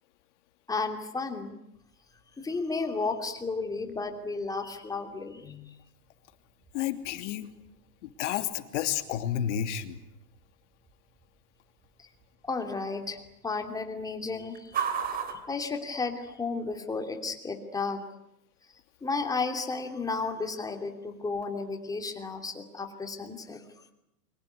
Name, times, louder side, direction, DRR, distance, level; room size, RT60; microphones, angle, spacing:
voice 1, 0.7-1.6 2.4-5.7 12.5-14.9 15.3-18.0 19.0-23.6, left 4 dB, 10° left, 5 dB, 3.0 m, -33 dB
sound 1, 1.7-16.6, right 7 dB, 20° right, 3.2 m, -43 dB
voice 2, 6.7-7.5 8.0-10.0, left 10 dB, 50° left, 8 dB, 3.0 m, -31 dB
28.5 x 24.5 x 8.3 m, 0.83 s
hypercardioid pair, 145°, 46 cm